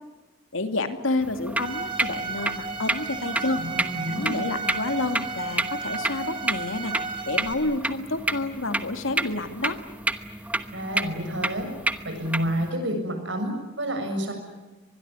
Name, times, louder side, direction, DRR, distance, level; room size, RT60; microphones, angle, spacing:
voice 1, 0.5-3.6 4.1-7.0 7.3-9.8, left 2 dB, 75° left, 8 dB, 2.6 m, -29 dB
sound 1, 1.2-12.7, right 2 dB, 5° right, 1.0 m, -31 dB
Bowed string instrument, 1.6-7.5, right 4 dB, 25° right, 4.0 m, -33 dB
voice 2, 3.6-4.4 10.7-11.7 12.0-14.3, equal, 60° right, 5 dB, 7.0 m, -29 dB
25.0 x 21.0 x 9.9 m, 1.1 s
head